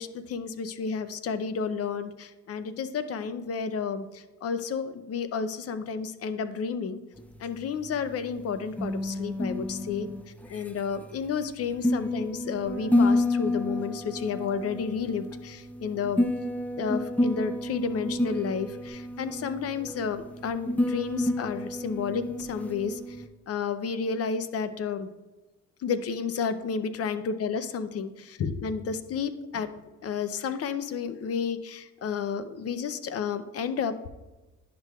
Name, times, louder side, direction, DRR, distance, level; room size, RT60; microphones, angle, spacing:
voice 1, 0.0-7.0 7.4-10.1 10.5-16.3 16.8-23.2 23.5-25.1 25.8-29.7 30.0-34.1, left 6 dB, 50° left, 12 dB, 0.6 m, -31 dB
sound 1, 7.2-23.3, left 1 dB, 5° left, 0.4 m, -30 dB
Bass guitar, 12.7-18.9, left 3 dB, 85° left, 1.7 m, -45 dB
10.0 x 5.8 x 2.3 m, 1.1 s
cardioid pair, 90°, 30 cm